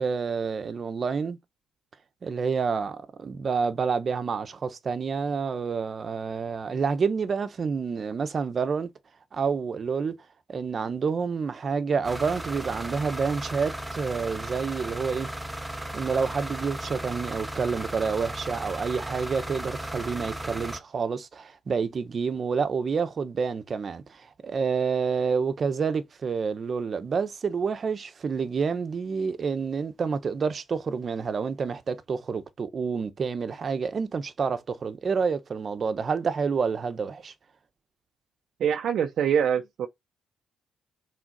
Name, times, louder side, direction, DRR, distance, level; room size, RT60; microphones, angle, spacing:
voice 1, 0.0-1.4 2.2-8.9 9.3-10.1 10.5-15.3 15.9-37.3, right 5 dB, 45° right, 1.1 m, -28 dB
sound 1, 12.0-20.8, right 1 dB, 10° right, 1.1 m, -36 dB
voice 2, 38.6-39.9, right 8 dB, 65° right, 0.8 m, -24 dB
6.2 x 4.3 x 4.1 m
cardioid pair, 90°, 0 cm